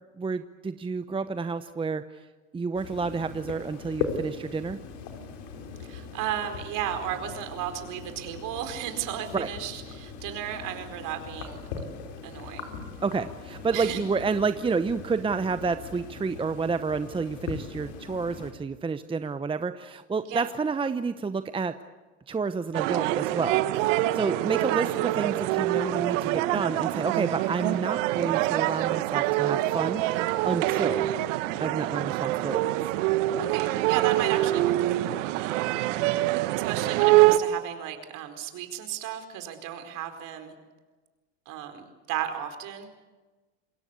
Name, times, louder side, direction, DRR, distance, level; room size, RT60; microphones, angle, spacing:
voice 1, 0.2-2.0 2.5-4.8 9.3-9.5 13.0-21.8 22.3-31.1 31.6-32.8, right 4 dB, 15° right, 11 dB, 0.9 m, -30 dB
sound 1, 2.7-18.5, left 6 dB, 70° left, 4.9 m, -39 dB
voice 2, 5.9-11.6 12.2-12.7 13.7-14.0 20.2-20.5 33.4-35.8 36.5-40.5 41.5-43.0, right 10 dB, 55° right, 7 dB, 4.6 m, -34 dB
sound 2, 22.7-37.4, right 16 dB, 75° right, 1.4 m, -25 dB
27.5 x 21.5 x 8.5 m, 1.3 s
supercardioid pair, 105°, 38 cm